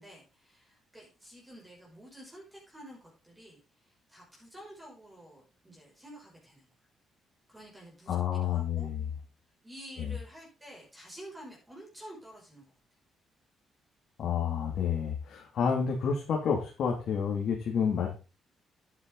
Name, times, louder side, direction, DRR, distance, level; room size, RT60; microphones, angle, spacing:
voice 1, 0.0-3.0 3.2-6.7 7.5-8.9 9.6-12.7, equal, 10° right, -2 dB, 6.2 m, -50 dB
voice 2, 8.1-9.0 10.0-10.1 14.2-18.1, left 7 dB, 65° left, 0 dB, 2.5 m, -29 dB
10.5 x 9.7 x 3.9 m, 0.32 s
cardioid pair, 90°, 0 cm